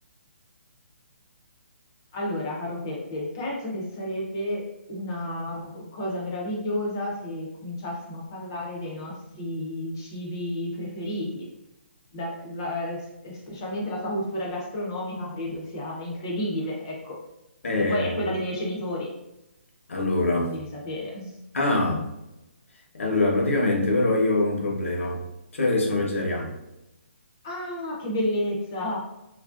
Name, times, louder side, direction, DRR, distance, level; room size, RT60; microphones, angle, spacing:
voice 1, 2.1-11.5 12.1-17.2 17.9-19.1 20.5-21.4 27.4-29.0, left 1 dB, 20° left, -3 dB, 0.4 m, -31 dB
voice 2, 17.6-18.3 19.9-20.5 21.5-22.1 22.9-25.2 25.5-26.5, left 2 dB, 85° left, 0 dB, 0.8 m, -24 dB
2.8 x 2.5 x 2.3 m, 0.91 s
hypercardioid pair, 175°, 7 cm